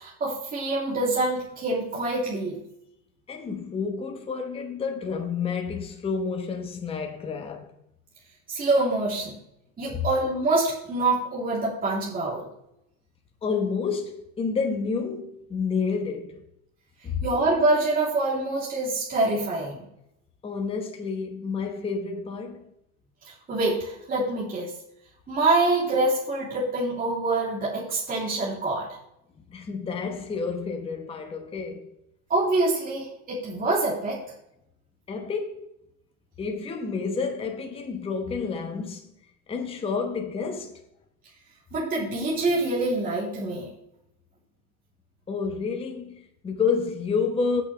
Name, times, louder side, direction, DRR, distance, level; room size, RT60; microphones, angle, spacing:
voice 1, 0.0-2.6 8.5-9.3 9.8-12.5 17.2-19.9 23.2-24.7 25.3-28.9 32.3-34.2 41.7-43.7, right 2 dB, 20° right, 3.2 m, -25 dB
voice 2, 3.3-7.7 9.9-10.1 13.4-16.4 17.0-17.2 20.4-22.6 29.5-31.9 35.1-35.7 36.4-39.1 39.5-40.8 45.3-47.6, left 5 dB, 10° left, 1.0 m, -29 dB
17.5 x 6.3 x 3.3 m
supercardioid pair, 140°, 45 cm